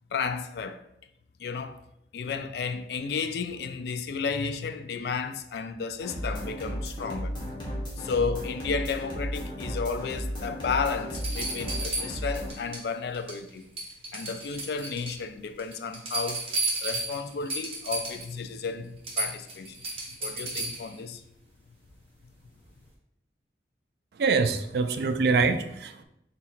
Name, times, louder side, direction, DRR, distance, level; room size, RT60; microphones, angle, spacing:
voice 1, 0.1-0.8 1.4-1.8 2.1-7.5 8.0-13.6 14.1-16.5 16.8-19.8 20.2-21.2, left 5 dB, 65° left, 0.3 m, -32 dB
sound 1, 6.0-12.5, equal, 25° left, 1.1 m, -34 dB
sound 2, 11.1-12.9 13.1-13.5 13.8-15.2 15.6-18.3 18.7-18.8 19.0-21.0 22.6-22.7, right 2 dB, 30° right, 1.0 m, -33 dB
voice 2, 24.2-26.0, right 4 dB, 65° right, 0.3 m, -24 dB
4.3 x 3.9 x 2.4 m
head